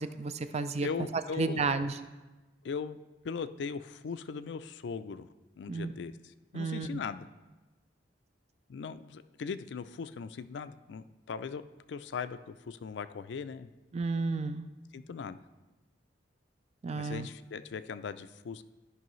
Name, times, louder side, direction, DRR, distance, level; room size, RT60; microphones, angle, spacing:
voice 1, 0.0-2.0 5.7-5.9 6.5-7.0 13.9-14.7 16.8-17.3, right 4 dB, 35° right, 11 dB, 0.4 m, -32 dB
voice 2, 0.8-1.7 2.6-3.0 3.2-5.3 5.6-7.2 8.7-11.6 11.9-13.7 14.9-15.4 16.9-18.6, left 5 dB, 65° left, 12 dB, 0.4 m, -39 dB
13.5 x 5.5 x 3.1 m, 1.1 s
head